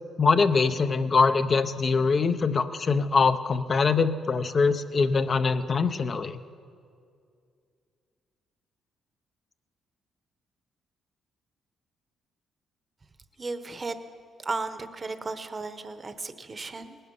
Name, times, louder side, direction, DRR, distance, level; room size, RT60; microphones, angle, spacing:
voice 1, 0.2-6.4, left 4 dB, 40° left, 10 dB, 0.6 m, -23 dB
voice 2, 13.4-13.9 14.4-17.0, right 3 dB, 30° right, 10 dB, 0.9 m, -35 dB
19.0 x 11.0 x 5.4 m, 2.3 s
cardioid pair, 90°, 0 cm